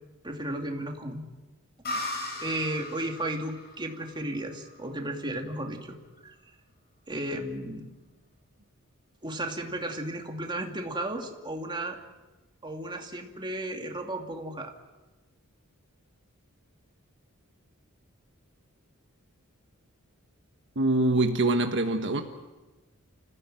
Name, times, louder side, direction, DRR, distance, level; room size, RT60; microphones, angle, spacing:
voice 1, 0.2-1.2 2.0-6.0 6.2-6.4 7.1-7.9 9.2-12.0 12.6-14.7, right 1 dB, 20° right, 3 dB, 2.5 m, -34 dB
sound 1, 1.8-5.4, left 2 dB, 45° left, 7.2 m, -38 dB
voice 2, 20.7-22.2, right 2 dB, 55° right, 5 dB, 1.4 m, -24 dB
29.5 x 15.5 x 9.1 m, 1.2 s
head